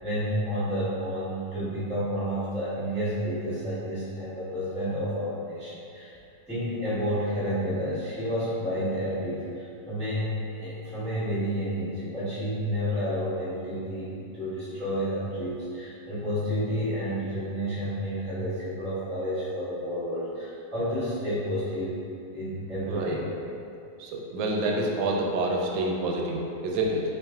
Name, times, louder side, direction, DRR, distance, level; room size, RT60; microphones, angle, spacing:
voice 1, 0.0-6.1 6.5-21.9 22.3-23.2, equal, 5° left, -13 dB, 0.7 m, -30 dB
voice 2, 24.0-27.0, right 2 dB, 90° right, -1 dB, 1.3 m, -27 dB
4.1 x 3.1 x 2.3 m, 2.6 s
omnidirectional pair, 2.0 m